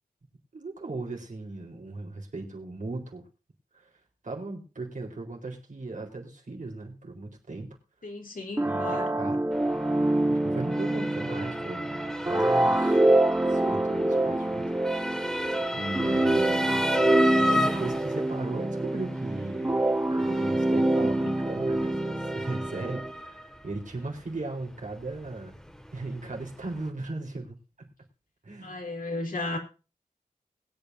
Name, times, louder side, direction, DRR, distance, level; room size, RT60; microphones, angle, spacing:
voice 1, 0.5-3.2 3.7-3.9 4.2-7.8 8.6-9.5 9.8-10.0 10.3-12.0 12.2-13.1 13.5-15.4 15.7-16.9 17.5-19.8 20.1-25.5 25.9-27.9 28.4-28.8, right 2 dB, 60° right, 1 dB, 4.1 m, -37 dB
voice 2, 8.0-9.2 21.0-21.4 28.6-29.6, left 2 dB, 75° left, 2 dB, 3.4 m, -35 dB
sound 1, 8.6-23.1, right 1 dB, 15° right, 1.1 m, -26 dB
Motor vehicle (road) / Siren, 9.5-26.9, equal, 5° left, 2.0 m, -35 dB
22.0 x 8.9 x 2.7 m, 0.33 s
wide cardioid pair, 90°, 14 cm